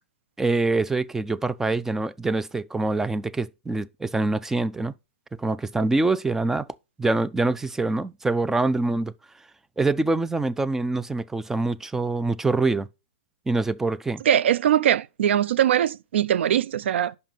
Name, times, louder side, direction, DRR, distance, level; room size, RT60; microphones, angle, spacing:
voice 1, 0.4-4.9 5.4-6.7 7.0-9.1 9.8-12.9 13.5-14.2, right 3 dB, 5° right, 0.3 m, -25 dB
voice 2, 14.2-17.2, right 10 dB, 70° right, 0.4 m, -21 dB
5.8 x 5.3 x 5.2 m
hypercardioid pair, 125°, 7 cm